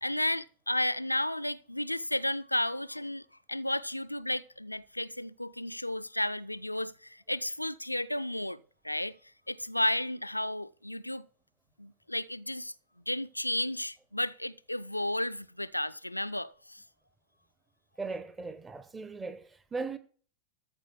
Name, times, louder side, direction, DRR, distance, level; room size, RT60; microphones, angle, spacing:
voice 1, 0.0-8.6 8.8-9.2 9.5-11.3 11.8-12.7 13.1-16.8, left 1 dB, 85° left, 0.5 m, -33 dB
voice 2, 18.0-20.0, right 4 dB, 15° right, 1.2 m, -38 dB
13.5 x 5.0 x 8.2 m
figure-of-eight pair, 90°, 0 cm